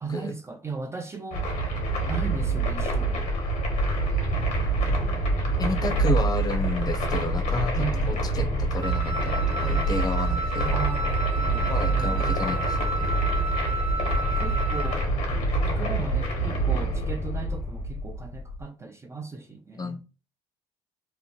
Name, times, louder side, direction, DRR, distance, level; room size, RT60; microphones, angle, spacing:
voice 1, 0.0-1.5 2.1-3.3 7.8-8.2 10.7-12.3 14.4-15.1 15.6-20.0, right 4 dB, 20° right, 0.4 m, -36 dB
sound 1, 1.3-18.6, right 2 dB, 70° left, 1.0 m, -26 dB
voice 2, 5.6-10.8 11.7-13.2 19.8-20.1, left 3 dB, 30° left, 0.6 m, -31 dB
Wind instrument woodwind instrument, 8.8-15.0, right 2 dB, 60° right, 0.7 m, -32 dB
2.8 x 2.1 x 2.8 m
supercardioid pair, 80°, 13 cm